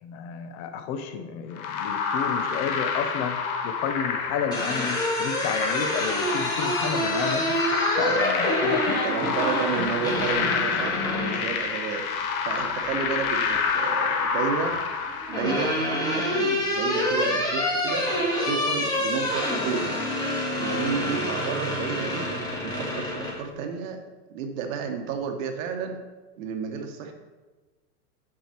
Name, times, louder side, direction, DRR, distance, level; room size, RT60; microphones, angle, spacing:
voice 1, 0.0-3.4 3.6-7.4 8.0-9.0, left 7 dB, 30° left, 7 dB, 0.7 m, -31 dB
sound 1, 1.6-15.9, left 5 dB, 60° left, 1.2 m, -28 dB
sound 2, 4.2-11.4 12.9-13.6 14.8-23.4, left 1 dB, 10° left, 1.7 m, -27 dB
voice 2, 8.8-12.1 12.4-14.8 15.3-18.1 18.4-20.0 20.5-22.3 22.6-24.0 24.3-26.0 26.4-27.1, right 6 dB, 55° right, 5 dB, 1.2 m, -31 dB
6.7 x 6.3 x 4.3 m, 1.2 s
hypercardioid pair, 135°, 48 cm